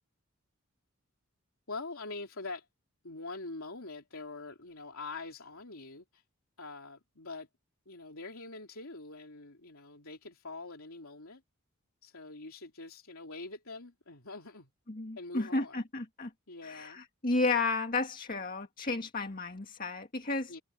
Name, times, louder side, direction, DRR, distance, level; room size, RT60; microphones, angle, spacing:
voice 1, 1.7-2.7 3.0-6.2 6.6-7.5 7.9-11.4 12.0-14.7 15.2-15.8 16.5-17.0 20.5-20.6, left 3 dB, 75° left, 3.0 m, -44 dB
voice 2, 14.9-16.3 16.6-20.6, left 3 dB, 40° left, 1.9 m, -33 dB
head